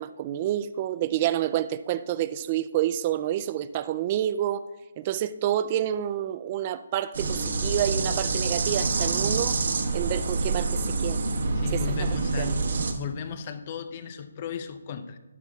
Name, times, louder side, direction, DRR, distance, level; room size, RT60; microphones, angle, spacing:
voice 1, 0.0-4.6 5.0-9.6 9.9-11.2 11.7-11.8 12.4-12.5, right 11 dB, 25° right, 0.3 m, -28 dB
sound 1, 7.1-12.9, right 3 dB, 65° right, 1.2 m, -27 dB
voice 2, 11.6-12.6 13.0-15.2, left 8 dB, 30° left, 0.6 m, -35 dB
13.0 x 10.5 x 2.3 m
hypercardioid pair, 170°, 0 cm